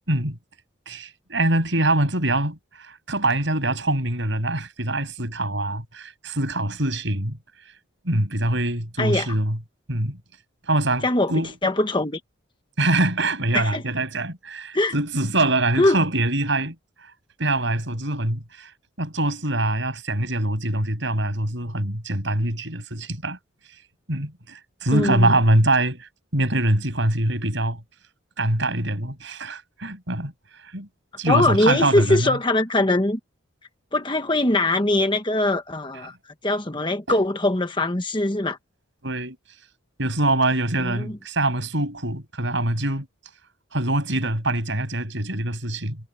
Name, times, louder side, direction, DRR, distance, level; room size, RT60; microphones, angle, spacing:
voice 1, 0.1-0.4 0.9-7.4 8.0-9.6 9.9-10.2 10.6-11.5 12.8-16.7 17.4-18.7 19.0-23.4 24.1-27.8 28.4-30.3 30.7-30.9 31.2-32.4 37.1-37.2 39.0-39.4 40.0-43.1 43.7-46.0, right 1 dB, 60° right, 6.8 m, -24 dB
voice 2, 11.0-11.3 11.6-12.2 13.5-13.8 14.7-14.9 15.8-16.0 24.9-25.4 31.3-33.2 33.9-36.1 36.4-38.6 40.8-41.2, left 2 dB, 25° left, 1.3 m, -22 dB
head